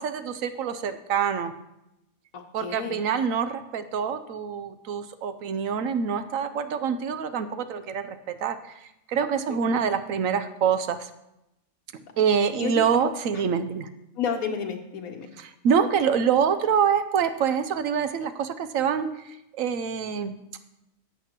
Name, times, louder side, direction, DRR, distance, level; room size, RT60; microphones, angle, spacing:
voice 1, 0.0-1.5 2.5-11.1 12.2-13.9 15.4-20.3, right 7 dB, 75° right, 11 dB, 1.0 m, -26 dB
voice 2, 2.3-3.0 9.6-9.8 12.2-12.3 12.6-13.1 14.2-15.3, left 6 dB, 80° left, 3 dB, 1.3 m, -32 dB
14.0 x 8.2 x 2.9 m, 0.86 s
omnidirectional pair, 1.5 m